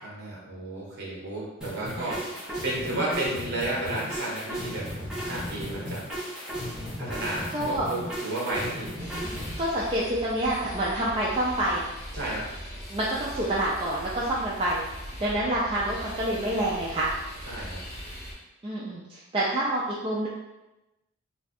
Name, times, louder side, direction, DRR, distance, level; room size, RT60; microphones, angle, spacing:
voice 1, 0.0-2.2 2.6-4.9 5.2-6.0 7.0-8.9 12.1-12.4 17.5-17.8, right 1 dB, 50° right, -5 dB, 1.0 m, -32 dB
sound 1, 1.6-9.6, equal, 5° right, 0.7 m, -35 dB
voice 2, 7.5-7.9 9.6-11.8 12.9-14.8 15.2-17.1 18.6-20.3, right 1 dB, 25° right, -6 dB, 0.3 m, -27 dB
sound 2, 9.0-18.3, equal, 45° left, 0.9 m, -40 dB
2.5 x 2.3 x 4.0 m, 1.0 s
head